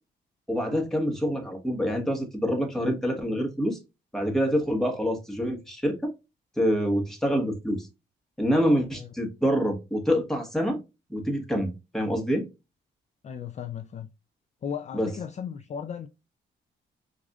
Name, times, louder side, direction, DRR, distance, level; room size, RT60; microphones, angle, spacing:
voice 1, 0.5-3.8 4.1-6.1 6.6-7.9 8.4-10.8 11.1-12.5 14.9-15.1, equal, ahead, 1.3 m, -26 dB
voice 2, 13.2-14.1 14.6-16.1, left 8 dB, 35° left, 0.4 m, -36 dB
4.7 x 2.6 x 2.3 m
cardioid pair, 90°, 20 cm